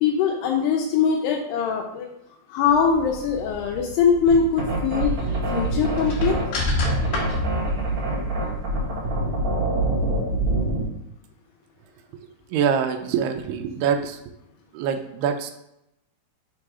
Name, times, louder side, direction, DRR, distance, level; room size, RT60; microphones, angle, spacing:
voice 1, 0.0-2.1 2.5-5.1 5.5-6.4, left 6 dB, 80° left, 1 dB, 2.6 m, -22 dB
sound 1, 2.7-8.0, left 1 dB, 65° left, 2.5 m, -31 dB
sound 2, 4.3-10.9, right 2 dB, 60° right, 1.3 m, -25 dB
voice 2, 12.5-14.2 14.7-15.5, right 7 dB, 80° right, 7 dB, 2.5 m, -24 dB
6.6 x 3.9 x 4.7 m, 0.82 s
omnidirectional pair, 4.7 m